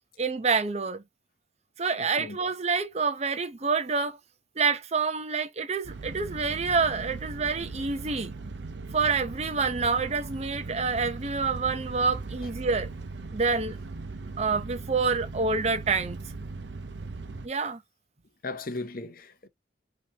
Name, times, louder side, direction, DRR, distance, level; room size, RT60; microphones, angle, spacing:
voice 1, 0.2-1.0 1.8-4.2 4.6-8.3 8.9-12.9 13.3-13.8 14.4-16.2 17.4-17.8, right 4 dB, 35° right, 0.7 m, -27 dB
voice 2, 2.0-2.4 18.4-19.5, left 2 dB, 50° left, 0.7 m, -37 dB
sound 1, 5.8-17.5, right 3 dB, 75° right, 0.8 m, -39 dB
5.4 x 3.0 x 2.8 m
head